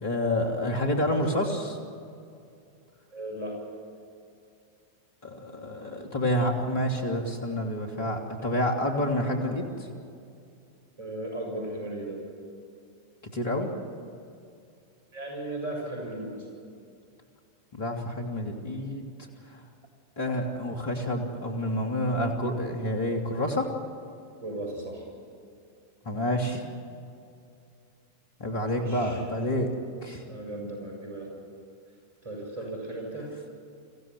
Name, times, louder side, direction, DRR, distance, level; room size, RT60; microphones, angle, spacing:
voice 1, 0.0-1.8 5.2-9.7 13.3-13.7 17.7-19.0 19.5-19.6 20.2-23.7 26.0-26.6 28.4-29.7 30.0-30.2, left 1 dB, 55° left, 2 dB, 3.1 m, -28 dB
voice 2, 3.1-3.6 11.0-12.2 15.1-16.5 24.4-25.1 28.7-29.2 30.3-31.3 32.2-33.3, right 1 dB, 55° right, 1 dB, 7.1 m, -36 dB
24.5 x 15.5 x 9.7 m, 2.4 s
figure-of-eight pair, 90°, 0 cm